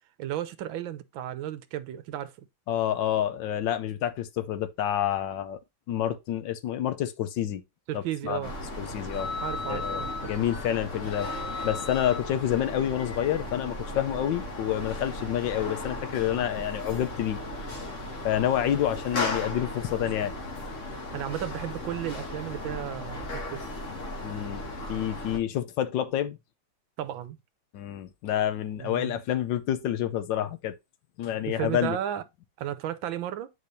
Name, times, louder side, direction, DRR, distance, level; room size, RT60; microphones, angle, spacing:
voice 1, 0.2-2.5 7.9-8.6 9.4-10.3 21.1-23.6 27.0-27.4 28.8-29.2 31.5-32.2 32.6-33.5, right 11 dB, 80° right, 1.5 m, -34 dB
voice 2, 2.7-5.6 5.9-7.6 7.9-8.4 8.8-9.3 9.7-11.3 11.6-17.4 18.2-20.3 24.2-24.6 24.9-26.4 27.7-30.7 31.2-32.0, left 11 dB, 70° left, 1.3 m, -28 dB
sound 1, 8.4-25.4, left 2 dB, 40° left, 1.7 m, -35 dB
8.5 x 4.7 x 2.6 m
omnidirectional pair, 2.1 m